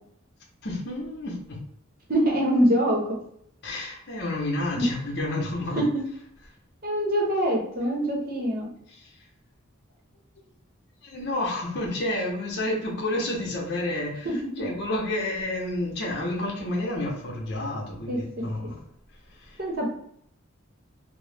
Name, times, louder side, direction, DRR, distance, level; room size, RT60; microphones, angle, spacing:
voice 1, 0.6-1.6 3.6-5.8 8.9-9.1 11.0-18.8 19.3-19.6, left 1 dB, 55° left, -2 dB, 0.8 m, -30 dB
voice 2, 2.1-3.0 4.8-4.9 5.8-6.0 6.8-8.7 14.2-14.7 18.1-18.2 19.6-19.9, equal, 45° right, -2 dB, 0.8 m, -24 dB
2.9 x 2.0 x 3.3 m, 0.68 s
head